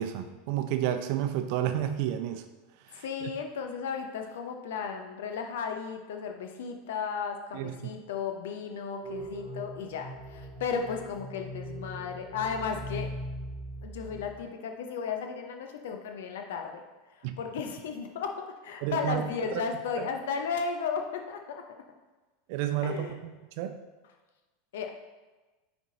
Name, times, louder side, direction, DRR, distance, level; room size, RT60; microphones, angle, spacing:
voice 1, 0.0-2.4 2.9-3.3 7.5-7.9 17.2-17.4 18.8-19.2 19.5-19.6 20.0-20.1 22.5-23.7, right 11 dB, 60° right, 7 dB, 0.6 m, -31 dB
voice 2, 2.9-13.1 13.8-16.8 17.1-21.6 22.8-23.2 24.7-24.9, left 6 dB, 70° left, 4 dB, 0.8 m, -35 dB
sound 1, 9.0-14.4, right 1 dB, 10° left, 2.1 m, -40 dB
9.7 x 3.6 x 3.9 m, 1.2 s
hypercardioid pair, 85°, 0 cm